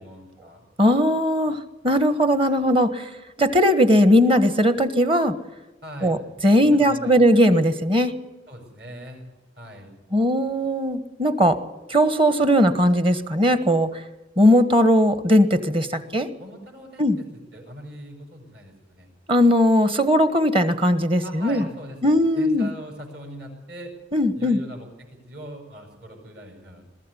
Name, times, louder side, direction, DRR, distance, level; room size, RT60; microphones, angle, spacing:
voice 1, 0.0-0.6 5.8-6.2 6.6-7.2 8.5-9.3 9.6-9.9 15.9-17.3 17.5-19.1 21.2-23.9 24.4-26.9, equal, 60° right, 3 dB, 7.2 m, -41 dB
voice 2, 0.8-3.1 3.4-5.3 6.0-6.2 6.4-8.1 10.1-11.6 11.9-13.9 14.4-16.3 17.0-17.2 19.3-21.6 22.0-22.7 24.1-24.6, equal, 30° right, 12 dB, 1.4 m, -19 dB
22.5 x 14.0 x 9.9 m, 1.1 s
head